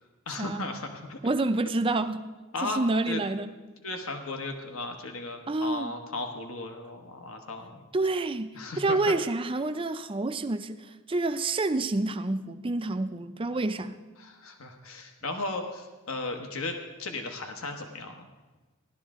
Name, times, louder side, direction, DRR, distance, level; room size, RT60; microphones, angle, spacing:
voice 1, 0.3-1.2 2.5-3.2 3.8-7.7 8.5-9.1 14.2-18.3, left 2 dB, 65° left, 4 dB, 1.1 m, -36 dB
voice 2, 1.2-2.2 2.6-3.5 5.5-5.9 7.9-14.0, right 2 dB, 25° right, 10 dB, 0.5 m, -28 dB
16.5 x 12.0 x 3.7 m, 1.2 s
head